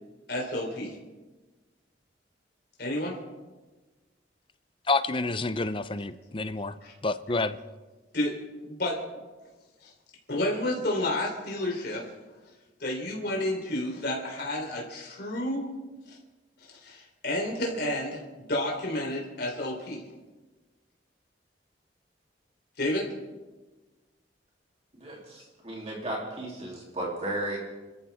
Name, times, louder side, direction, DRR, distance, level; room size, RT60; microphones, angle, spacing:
voice 1, 0.3-1.0 2.8-3.2 6.8-6.9 8.1-9.0 9.8-9.9 10.3-12.1 12.8-15.7 16.1-16.2 16.8-20.0 22.8-23.2, left 1 dB, 60° left, 3.6 m, -31 dB
voice 2, 4.9-6.8 7.0-7.6, left 3 dB, 30° left, 0.6 m, -28 dB
voice 3, 24.9-27.6, right 1 dB, 35° right, 3.2 m, -34 dB
29.0 x 14.0 x 3.6 m
head